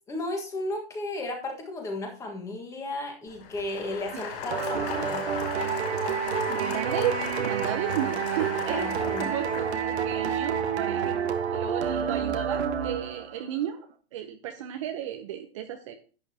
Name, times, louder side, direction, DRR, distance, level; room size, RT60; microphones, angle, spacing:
voice 1, 0.1-5.2 8.0-8.1 8.7-9.3, left 2 dB, 10° left, 3 dB, 1.5 m, -34 dB
Applause, 3.3-10.2, left 6 dB, 40° left, 4.8 m, -37 dB
sound 1, 4.5-13.4, right 7 dB, 85° right, 1.4 m, -29 dB
voice 2, 6.5-8.9 9.2-13.8 14.1-16.0, right 10 dB, 30° right, 5 dB, 0.7 m, -34 dB
11.0 x 8.4 x 2.8 m, 0.37 s
hypercardioid pair, 165°, 32 cm